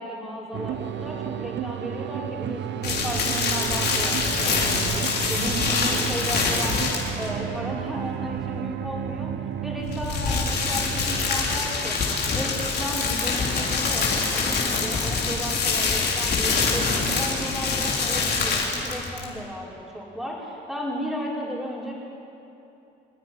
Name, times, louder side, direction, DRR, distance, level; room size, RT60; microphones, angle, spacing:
voice 1, 0.0-6.8 7.1-9.3 9.6-12.0 12.3-21.9, equal, ahead, -4 dB, 5.5 m, -34 dB
sound 1, 0.5-14.2, right 10 dB, 65° right, 0.8 m, -33 dB
sound 2, 2.8-7.3 9.8-19.3, left 4 dB, 55° left, 4.0 m, -25 dB
27.0 x 9.8 x 9.9 m, 2.8 s
cardioid pair, 90°, 20 cm